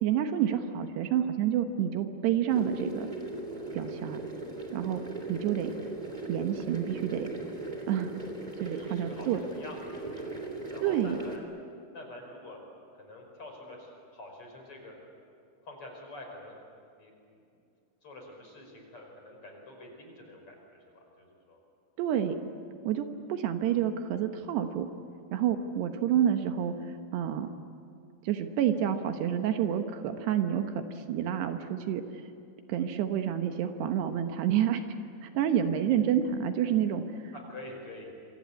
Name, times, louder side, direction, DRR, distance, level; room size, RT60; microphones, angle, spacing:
voice 1, 0.0-3.1 3.7-4.2 4.7-5.0 5.3-5.7 6.3-7.3 7.9-8.1 8.6-9.4 10.8-11.2 22.0-22.4 22.8-24.9 25.3-26.7 27.1-27.5 28.2-32.0 32.7-34.8 35.2-37.3, right 9 dB, 75° right, 7 dB, 3.2 m, -28 dB
sound 1, 2.5-11.4, right 2 dB, 10° right, 2.6 m, -38 dB
voice 2, 8.6-11.4 11.9-12.6 12.9-14.9 15.6-16.6 17.0-17.6 18.0-21.6 37.3-38.1, left 1 dB, 30° left, 2 dB, 5.8 m, -47 dB
27.0 x 25.0 x 8.5 m, 2.4 s
omnidirectional pair, 4.9 m